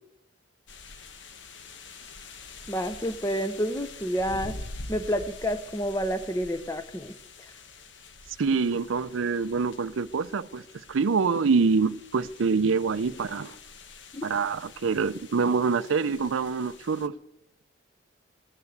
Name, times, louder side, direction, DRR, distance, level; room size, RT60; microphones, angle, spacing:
sound 1, 0.7-17.1, left 3 dB, 65° left, 1.0 m, -46 dB
voice 1, 2.7-4.5 4.9-7.5 14.1-14.2, equal, 15° left, 0.6 m, -29 dB
voice 2, 8.4-13.6 14.2-17.1, right 5 dB, 80° right, 0.5 m, -26 dB
17.0 x 9.7 x 8.0 m
head